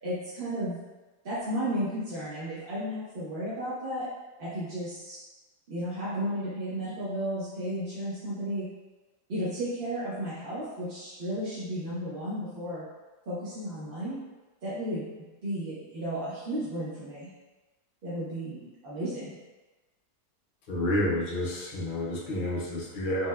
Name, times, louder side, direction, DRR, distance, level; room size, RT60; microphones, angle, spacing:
voice 1, 0.0-0.8 1.2-4.0 4.4-5.2 5.7-8.7 9.3-12.8 13.3-14.2 14.6-15.0 15.4-17.3 18.0-19.3, equal, 45° right, -11 dB, 0.8 m, -33 dB
voice 2, 20.7-23.3, left 1 dB, 70° left, -4 dB, 0.4 m, -29 dB
3.5 x 2.8 x 2.2 m, 1.2 s
omnidirectional pair, 1.7 m